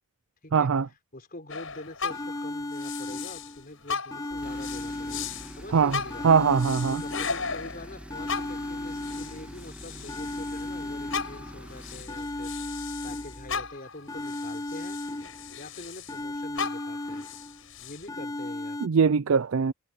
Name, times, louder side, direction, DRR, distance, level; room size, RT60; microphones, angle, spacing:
voice 1, 0.5-0.9 5.7-6.0 6.2-7.0 18.8-19.7, right 6 dB, 80° right, 0.5 m, -21 dB
voice 2, 1.1-5.3 5.6-6.3 6.9-12.5 13.0-15.0 15.6-17.2 17.8-18.8, left 2 dB, 45° left, 4.8 m, -44 dB
sound 1, 1.5-3.6 3.9-10.7 11.1-16.2 16.5-18.1, left 5 dB, 75° left, 6.7 m, -37 dB
sound 2, 1.7-1.8 2.1-3.7 4.1-5.7 6.1-7.7 8.1-9.7 10.1-11.7 12.1-13.7 14.1-15.7 16.1-17.7 18.1-18.9, left 2 dB, 15° left, 0.5 m, -36 dB
Tools, 4.3-13.8, equal, 5° right, 2.6 m, -45 dB
head